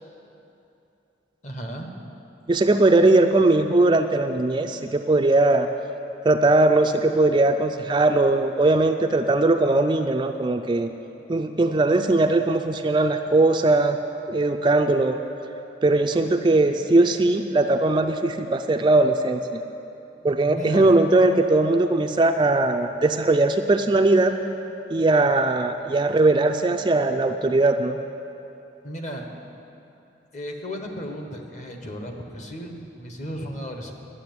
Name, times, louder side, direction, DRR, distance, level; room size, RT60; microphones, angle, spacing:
voice 1, 1.4-1.9 20.4-20.9 28.8-29.3 30.3-33.9, equal, 40° left, 3 dB, 1.2 m, -35 dB
voice 2, 2.5-5.7 6.2-10.9 11.3-14.0 14.3-15.2 15.8-19.6 20.2-24.3 24.9-28.0, right 2 dB, 25° right, 6 dB, 0.4 m, -20 dB
11.5 x 7.5 x 9.4 m, 2.8 s
head